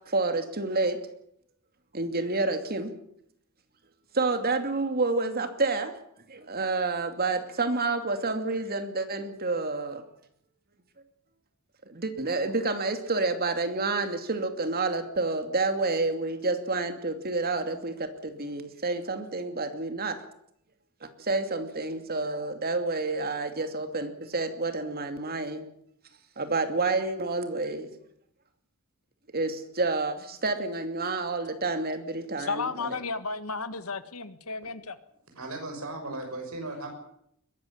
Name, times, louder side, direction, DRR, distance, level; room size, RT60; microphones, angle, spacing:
voice 1, 0.1-1.0 1.9-2.9 4.1-6.0 6.3-10.0 11.9-20.2 21.0-25.7 26.4-27.9 29.3-33.0, right 3 dB, 45° right, 8 dB, 2.6 m, -29 dB
voice 2, 32.4-35.0, left 4 dB, 80° left, 12 dB, 1.7 m, -33 dB
voice 3, 35.3-36.9, right 2 dB, 75° right, 3 dB, 6.6 m, -36 dB
22.0 x 13.5 x 10.0 m, 0.72 s
head